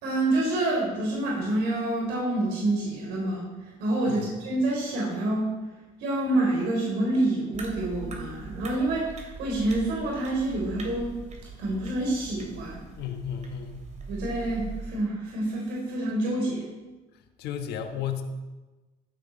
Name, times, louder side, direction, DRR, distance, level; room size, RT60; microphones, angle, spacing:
voice 1, 0.0-5.6 6.0-11.1 11.6-12.8 14.1-16.7, right 1 dB, 85° right, -2 dB, 3.9 m, -27 dB
sound 1, 7.5-14.9, right 4 dB, 45° right, 2.7 m, -41 dB
voice 2, 13.0-13.8 17.4-18.2, left 8 dB, 80° left, 6 dB, 1.3 m, -33 dB
14.5 x 10.5 x 4.4 m, 1.2 s
cardioid pair, 110°, 17 cm